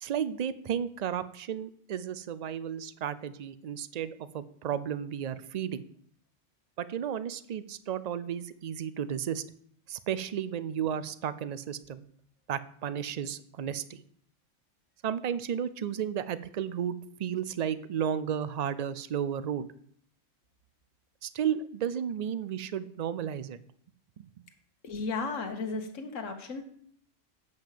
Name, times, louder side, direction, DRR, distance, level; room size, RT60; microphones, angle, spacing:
voice 1, 0.0-5.9 6.8-9.4 9.9-12.0 12.5-14.0 15.0-19.7 21.2-23.6 24.2-24.3, right 9 dB, 65° right, 15 dB, 0.4 m, -33 dB
voice 2, 24.8-26.6, left 4 dB, 85° left, 6 dB, 1.5 m, -34 dB
8.0 x 5.2 x 7.3 m, 0.63 s
omnidirectional pair, 1.3 m